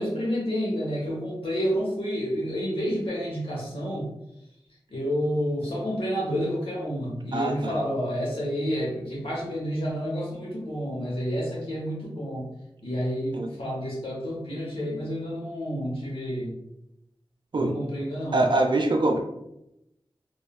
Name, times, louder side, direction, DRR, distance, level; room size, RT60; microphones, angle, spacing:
voice 1, 0.0-4.1 4.9-12.5 12.8-16.6 17.5-18.4, equal, 90° left, -5 dB, 0.8 m, -29 dB
voice 2, 7.3-7.7 13.3-13.5 17.5-17.7 18.3-19.2, right 2 dB, 55° right, 3 dB, 0.5 m, -23 dB
3.2 x 2.2 x 2.3 m, 0.86 s
wide cardioid pair, 50°, 9 cm